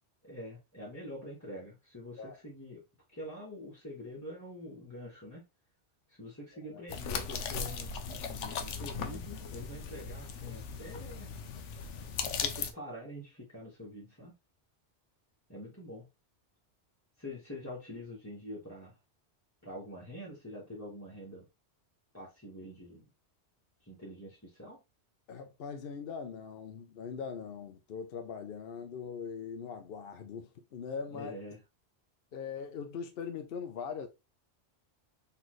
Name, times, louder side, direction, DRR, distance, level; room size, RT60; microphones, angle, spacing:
voice 1, 0.2-2.8 3.1-5.4 6.1-11.3 12.2-14.3 15.5-16.1 17.2-19.0 19.6-21.5 22.1-23.0 23.8-24.8 31.1-31.6, left 1 dB, 15° left, 1.3 m, -45 dB
sound 1, 6.9-12.7, left 6 dB, 85° left, 1.0 m, -38 dB
voice 2, 25.3-31.3 32.3-34.1, left 6 dB, 60° left, 0.8 m, -41 dB
4.1 x 3.4 x 3.1 m
omnidirectional pair, 1.2 m